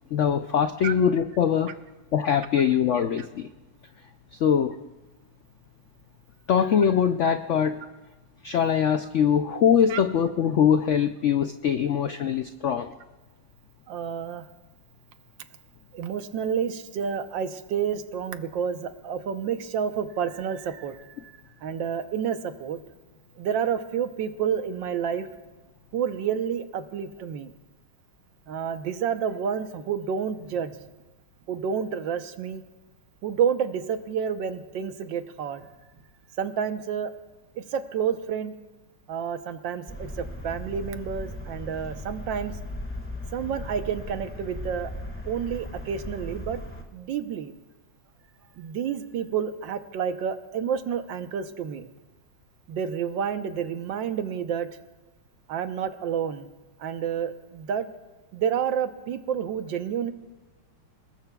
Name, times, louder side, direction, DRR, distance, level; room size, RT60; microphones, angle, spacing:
voice 1, 0.1-1.7 2.1-3.5 4.3-4.8 6.5-7.8 8.4-12.9, left 8 dB, 90° left, 8 dB, 0.6 m, -22 dB
voice 2, 13.9-14.4 15.9-21.3 21.6-22.8 23.4-25.3 25.9-27.5 28.5-30.8 31.5-32.6 33.2-35.7 36.4-37.1 37.6-38.5 39.1-42.6 43.3-44.9 45.2-46.6 46.9-47.5 48.6-51.9 52.7-54.7 55.5-56.5 56.8-57.9 58.3-60.1, right 7 dB, 80° right, 8 dB, 1.6 m, -29 dB
sound 1, 39.9-46.8, equal, 5° left, 1.6 m, -37 dB
29.0 x 19.5 x 2.3 m, 1.1 s
omnidirectional pair, 2.0 m